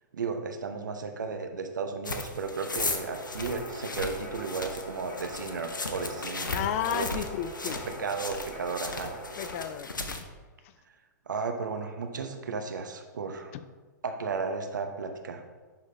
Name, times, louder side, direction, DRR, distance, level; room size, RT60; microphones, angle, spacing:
voice 1, 0.1-6.5 6.9-7.1 7.7-9.1 11.3-13.5 14.0-15.4, right 4 dB, 70° right, 6 dB, 0.8 m, -34 dB
sound 1, 2.0-10.2, left 3 dB, 85° left, 0.7 m, -36 dB
sound 2, 2.7-9.6, left 1 dB, 20° left, 1.8 m, -43 dB
voice 2, 6.5-7.8 9.4-9.9 10.1-10.2 13.5-13.6, left 10 dB, 45° left, 12 dB, 0.4 m, -32 dB
11.0 x 3.9 x 3.2 m, 1.4 s
figure-of-eight pair, 110°, 10 cm